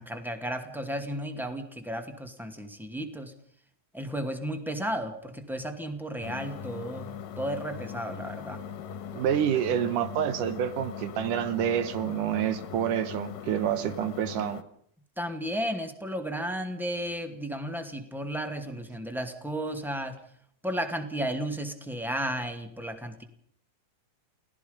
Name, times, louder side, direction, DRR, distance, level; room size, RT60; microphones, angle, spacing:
voice 1, 0.0-3.3 3.9-8.6 15.2-20.2 20.6-23.2, equal, ahead, 6 dB, 1.4 m, -33 dB
sound 1, 6.2-14.6, left 7 dB, 75° left, 2.9 m, -40 dB
voice 2, 9.1-14.6, right 10 dB, 70° right, 13 dB, 2.5 m, -28 dB
29.0 x 18.0 x 5.3 m, 0.63 s
omnidirectional pair, 4.0 m